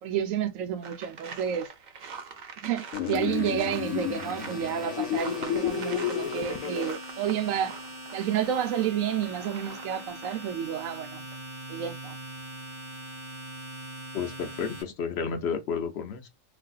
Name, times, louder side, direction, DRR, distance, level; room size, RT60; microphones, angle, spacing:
voice 1, 0.0-1.7 2.6-7.8 8.1-11.3 11.7-12.2, right 9 dB, 90° right, 1.0 m, -30 dB
sound 1, 0.8-10.7 11.1-11.3, right 5 dB, 50° right, 0.5 m, -44 dB
sound 2, 2.9-6.9, left 10 dB, 90° left, 1.0 m, -31 dB
Domestic sounds home sounds, 2.9-14.8, right 1 dB, 35° right, 1.2 m, -42 dB
voice 2, 14.1-16.3, left 6 dB, 65° left, 0.7 m, -31 dB
3.2 x 2.6 x 2.3 m
omnidirectional pair, 1.4 m